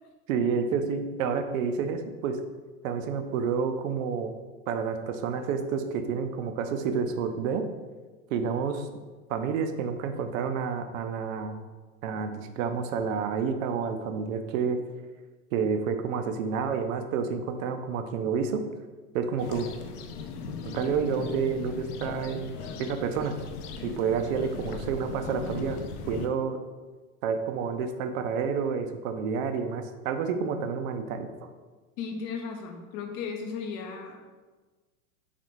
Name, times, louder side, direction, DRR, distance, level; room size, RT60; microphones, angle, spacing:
voice 1, 0.3-2.4 2.8-4.3 4.7-7.7 8.3-8.9 9.3-11.6 12.0-14.8 15.5-18.6 19.1-19.7 20.6-23.4 23.8-25.8 26.1-26.6 27.2-31.5, right 6 dB, 60° right, 7 dB, 0.6 m, -29 dB
sound 1, 19.4-26.3, left 5 dB, 80° left, 0.6 m, -38 dB
voice 2, 32.0-34.2, left 5 dB, 40° left, 4 dB, 0.7 m, -35 dB
4.1 x 3.2 x 3.1 m, 1.3 s
hypercardioid pair, 115°, 45 cm